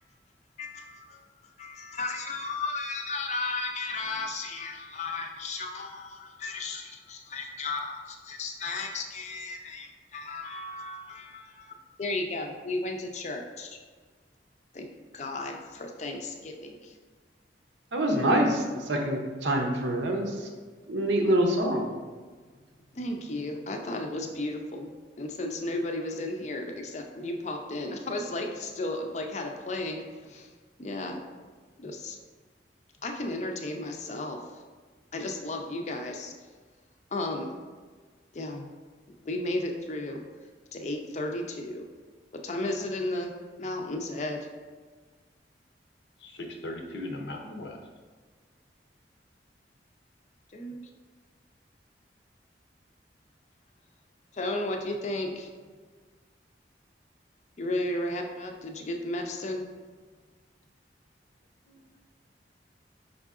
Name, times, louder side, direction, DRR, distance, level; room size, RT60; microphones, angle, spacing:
voice 1, 0.6-1.2 1.6-13.8 14.7-14.9 15.1-16.9 22.9-24.9 25.2-30.5 30.8-31.2 31.8-32.2 33.0-34.4 35.1-36.3 37.1-37.5 38.3-38.7 39.2-40.2 40.7-41.9 42.4-43.3 43.6-44.5 50.5-50.8 54.3-55.5 57.6-59.6, left 2 dB, 40° left, 3 dB, 0.5 m, -34 dB
voice 2, 17.9-20.5 20.9-21.9, right 1 dB, 85° right, 2 dB, 0.7 m, -25 dB
voice 3, 46.2-47.8 61.7-61.8, left 1 dB, 80° left, 2 dB, 0.6 m, -38 dB
5.4 x 3.6 x 2.4 m, 1.5 s
head